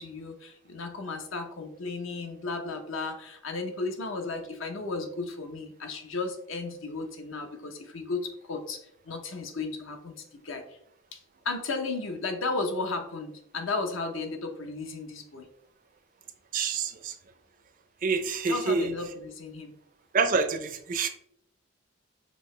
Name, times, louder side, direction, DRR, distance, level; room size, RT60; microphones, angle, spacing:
voice 1, 0.0-10.8 11.1-15.5 18.5-19.7, left 3 dB, 70° left, 5 dB, 0.7 m, -34 dB
voice 2, 16.5-17.1 18.0-18.9 20.1-21.1, right 4 dB, 40° right, 8 dB, 0.4 m, -27 dB
5.3 x 2.7 x 3.1 m, 0.70 s
head